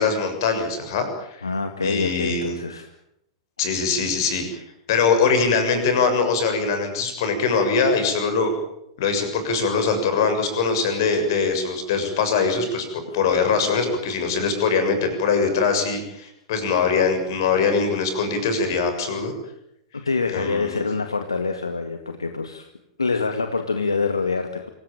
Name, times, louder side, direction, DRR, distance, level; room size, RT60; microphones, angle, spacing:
voice 1, 0.0-1.5 1.8-2.6 3.6-4.6 4.9-8.5 9.0-12.9 13.1-19.3 20.3-20.8, left 5 dB, 55° left, 7 dB, 7.0 m, -22 dB
voice 2, 1.4-2.9 20.1-22.7 23.0-24.7, left 4 dB, 80° left, 6 dB, 2.1 m, -25 dB
26.0 x 17.5 x 9.1 m, 0.81 s
figure-of-eight pair, 95°, 2 cm